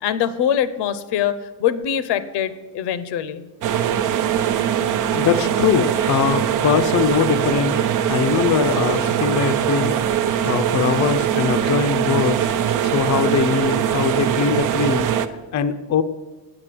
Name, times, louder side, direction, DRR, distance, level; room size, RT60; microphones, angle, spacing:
voice 1, 0.0-3.4, left 9 dB, 85° left, 14 dB, 0.8 m, -23 dB
sound 1, 3.6-15.3, right 9 dB, 50° right, 0.6 m, -21 dB
voice 2, 5.1-7.8 8.1-10.0 10.4-12.4 12.8-16.0, left 7 dB, 45° left, 9 dB, 0.5 m, -21 dB
8.8 x 8.1 x 7.6 m, 1.2 s
cardioid pair, 165°, 40 cm